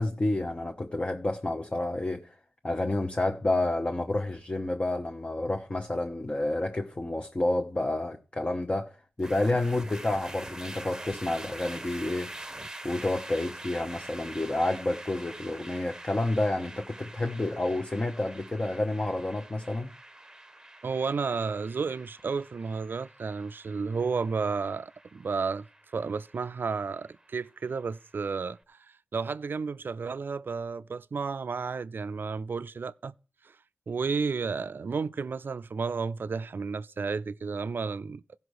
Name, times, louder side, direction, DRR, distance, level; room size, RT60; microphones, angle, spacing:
voice 1, 0.0-2.3 2.6-12.3 12.8-19.9, left 2 dB, 30° left, 0.9 m, -29 dB
sound 1, 9.2-28.4, right 1 dB, 15° right, 0.9 m, -45 dB
voice 2, 20.8-25.7 25.9-28.8 29.1-33.1 33.4-33.5 33.9-38.4, right 5 dB, 55° right, 0.4 m, -32 dB
15.0 x 5.5 x 6.4 m
cardioid pair, 60°, 4 cm